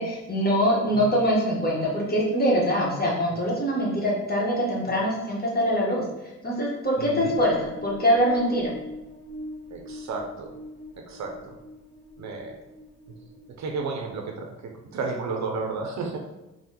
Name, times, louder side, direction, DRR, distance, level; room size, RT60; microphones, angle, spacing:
voice 1, 0.0-6.0 6.4-8.7, equal, 30° left, -4 dB, 1.3 m, -23 dB
sound 1, 7.0-14.5, left 1 dB, 35° right, 1.4 m, -43 dB
voice 2, 7.0-7.3 9.7-10.5 11.1-11.5 12.2-12.6 13.1-13.2 13.6-16.2, right 4 dB, 60° right, 3 dB, 0.6 m, -32 dB
3.3 x 2.3 x 2.9 m, 0.97 s
supercardioid pair, 60°, 31 cm